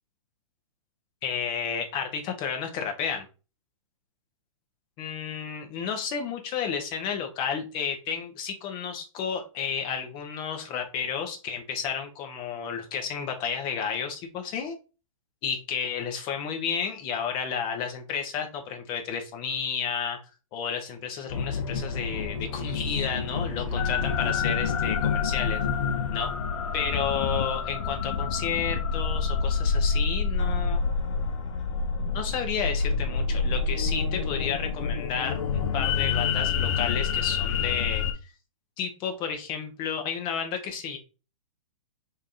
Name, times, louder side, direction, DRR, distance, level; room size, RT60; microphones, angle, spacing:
voice 1, 1.2-3.3 5.0-14.7 15.4-20.2 20.5-25.6 26.1-26.3 26.7-30.8 32.1-38.0 38.8-41.0, left 7 dB, 25° left, 5 dB, 0.8 m, -32 dB
Bowed string instrument, 20.9-24.6, right 9 dB, 50° right, 0.8 m, -45 dB
sound 1, 21.3-38.1, left 5 dB, 60° left, 0.7 m, -27 dB
3.2 x 2.8 x 3.7 m, 0.32 s
hypercardioid pair, 145°, 18 cm